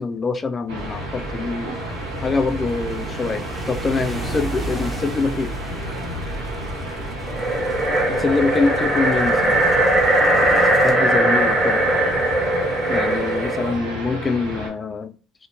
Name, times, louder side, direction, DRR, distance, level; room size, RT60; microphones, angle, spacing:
voice 1, 0.0-1.7 2.2-5.5 8.1-9.6 10.8-11.8 12.9-15.1, left 4 dB, 30° left, 10 dB, 0.3 m, -24 dB
sound 1, 0.7-14.7, right 1 dB, 90° right, 1.2 m, -32 dB
sound 2, 0.8-10.9, right 1 dB, 10° right, 0.7 m, -34 dB
sound 3, 7.3-13.7, right 1 dB, 25° right, 1.1 m, -19 dB
2.8 x 2.1 x 2.6 m, 0.35 s
hypercardioid pair, 75°, 0 cm